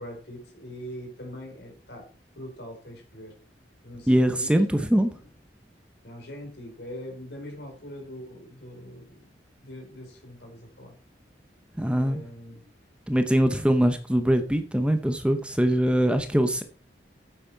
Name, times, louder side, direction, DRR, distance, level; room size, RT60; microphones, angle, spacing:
voice 1, 0.0-2.1 2.4-3.3 3.8-4.5 6.0-9.1 9.6-11.0 12.0-12.6, equal, 65° left, 3 dB, 4.2 m, -42 dB
voice 2, 4.1-5.1 11.7-12.3 13.1-16.6, equal, 5° right, 8 dB, 0.7 m, -22 dB
9.2 x 8.4 x 4.6 m, 0.39 s
head